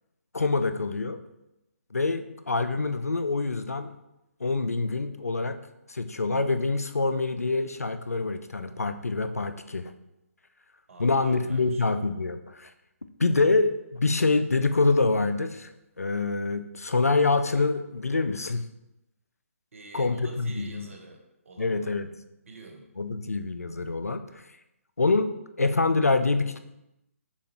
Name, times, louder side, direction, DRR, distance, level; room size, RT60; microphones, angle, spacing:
voice 1, 0.3-1.2 1.9-3.9 4.4-5.6 5.9-9.9 11.0-12.7 13.2-18.6 19.9-20.9 21.6-22.1 23.0-24.4 25.0-25.3 25.6-26.6, left 3 dB, 90° left, 10 dB, 0.4 m, -26 dB
voice 2, 10.9-11.8 19.7-21.9 22.4-22.9, right 2 dB, 60° right, 3 dB, 0.8 m, -46 dB
6.9 x 2.4 x 2.9 m, 0.91 s
figure-of-eight pair, 140°, 8 cm